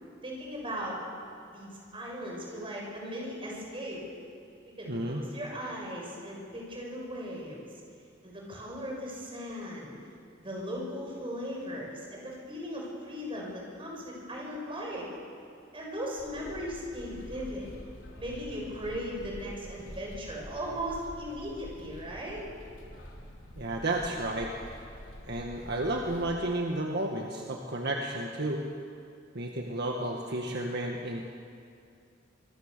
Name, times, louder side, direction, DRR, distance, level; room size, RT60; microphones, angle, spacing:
voice 1, 0.2-1.0 1.5-4.0 4.8-7.7 8.2-10.0 10.4-15.1 15.7-17.7 18.2-22.4, equal, 30° right, -2 dB, 6.9 m, -38 dB
voice 2, 4.9-5.2 23.6-24.5 25.3-28.7 29.4-31.3, right 1 dB, 60° right, 1 dB, 1.7 m, -32 dB
sound 1, 16.2-26.4, equal, 80° left, 4.2 m, -47 dB
26.5 x 22.5 x 6.9 m, 2.4 s
head